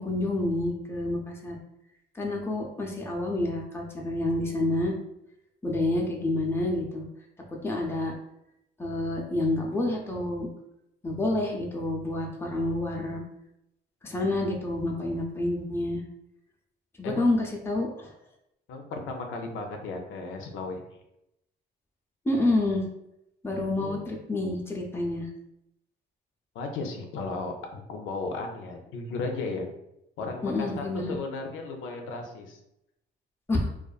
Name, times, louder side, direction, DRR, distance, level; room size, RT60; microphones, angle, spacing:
voice 1, 0.0-1.6 2.1-4.9 5.6-7.0 7.5-8.1 8.8-10.5 11.0-13.2 14.0-16.0 17.0-18.1 22.2-22.9 23.4-25.3 30.4-31.1 33.5-33.7, left 2 dB, 10° left, 0 dB, 0.5 m, -28 dB
voice 2, 18.7-20.8 23.8-24.2 26.6-29.7 30.2-32.6, left 3 dB, 85° left, 3 dB, 0.5 m, -35 dB
2.5 x 2.3 x 2.3 m, 0.83 s
cardioid pair, 90°, 20 cm